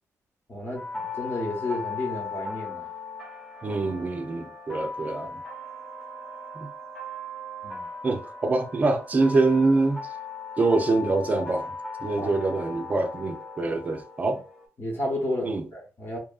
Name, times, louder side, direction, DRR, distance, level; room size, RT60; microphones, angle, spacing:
voice 1, 0.5-2.9 7.6-7.8 12.1-12.3 14.2-14.3 14.8-16.2, left 1 dB, 35° left, 0.9 m, -32 dB
sound 1, 0.7-14.6, left 3 dB, 5° left, 1.0 m, -38 dB
voice 2, 3.6-5.4 6.6-6.7 8.0-10.0 10.6-11.7 12.0-14.4 15.4-15.7, right 3 dB, 25° right, 0.4 m, -25 dB
2.6 x 2.4 x 2.4 m
wide cardioid pair, 140°, 6 cm